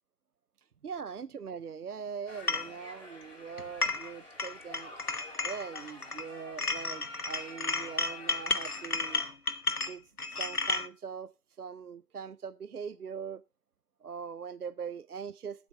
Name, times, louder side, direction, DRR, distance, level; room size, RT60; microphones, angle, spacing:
voice 1, 0.8-5.0 5.4-9.2 9.9-10.0 10.3-13.4 14.0-15.7, right 6 dB, 70° right, 0.5 m, -41 dB
sound 1, 2.3-9.3, left 1 dB, 40° left, 7.3 m, -49 dB
sound 2, 2.5-2.7 3.6-4.1 4.4-6.3 6.6-10.9, left 3 dB, 65° left, 1.2 m, -33 dB
17.0 x 8.4 x 3.7 m
figure-of-eight pair, 165°, 47 cm